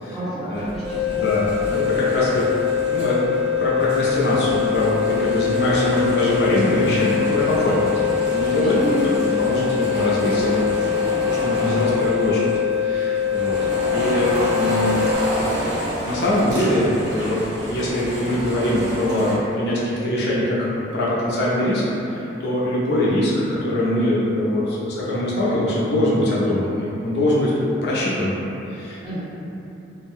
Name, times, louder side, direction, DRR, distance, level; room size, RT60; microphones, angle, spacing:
voice 1, 0.1-1.3 8.6-9.0 29.0-29.2, right 1 dB, 5° right, -15 dB, 0.9 m, -28 dB
sound 1, 0.5-19.3, equal, 65° right, 0.8 m, -30 dB
sound 2, 0.8-15.1, left 8 dB, 35° right, 0.5 m, -23 dB
voice 2, 1.1-2.4 2.9-8.7 9.2-11.0 11.3-12.4 12.8-13.6 13.9-15.0 15.3-15.6 16.0-21.8 22.1-27.5 27.8-28.4 28.7-29.0, left 1 dB, 60° left, -7 dB, 0.5 m, -22 dB
2.5 x 2.1 x 3.4 m, 2.9 s
head